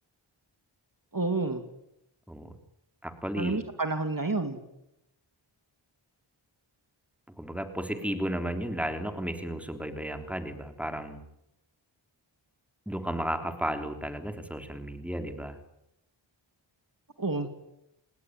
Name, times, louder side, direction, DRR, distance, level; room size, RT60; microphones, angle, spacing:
voice 1, 1.1-1.6 3.4-4.6 17.2-17.5, right 3 dB, 45° right, 8 dB, 2.8 m, -29 dB
voice 2, 3.0-3.6 7.3-11.2 12.9-15.6, equal, 5° right, 7 dB, 3.5 m, -33 dB
28.0 x 20.0 x 9.6 m, 0.84 s
wide cardioid pair, 45°, 48 cm